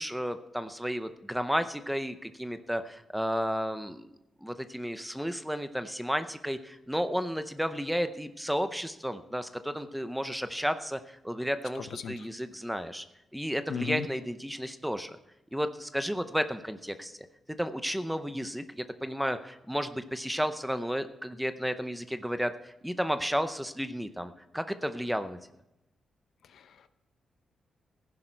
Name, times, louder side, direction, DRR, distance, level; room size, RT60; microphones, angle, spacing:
voice 1, 0.0-4.1 4.4-13.0 13.3-15.2 15.5-17.2 17.6-25.4, equal, ahead, 10 dB, 0.6 m, -32 dB
voice 2, 11.8-12.3 13.7-14.1 26.5-26.9, left 6 dB, 65° left, 12 dB, 0.7 m, -36 dB
15.0 x 10.5 x 4.5 m, 0.88 s
wide cardioid pair, 175°, 0 cm